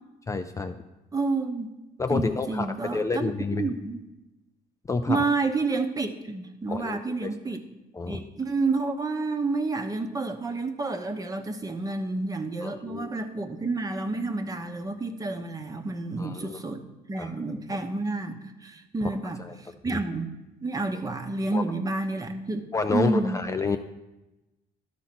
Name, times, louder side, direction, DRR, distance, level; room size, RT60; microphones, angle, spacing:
voice 1, 0.3-0.8 2.0-2.7 2.9-3.7 4.9-5.2 6.7-7.3 7.9-8.2 12.6-13.1 16.2-16.6 17.2-17.3 19.5-19.6 19.9-20.0 21.5-21.6 22.7-23.8, left 4 dB, 20° left, 7 dB, 0.4 m, -29 dB
voice 2, 1.1-1.7 2.1-4.0 5.1-7.6 8.1-20.3 20.6-23.4, right 3 dB, 20° right, 7 dB, 0.9 m, -30 dB
12.0 x 4.1 x 5.9 m, 1.0 s
cardioid pair, 110°, 17 cm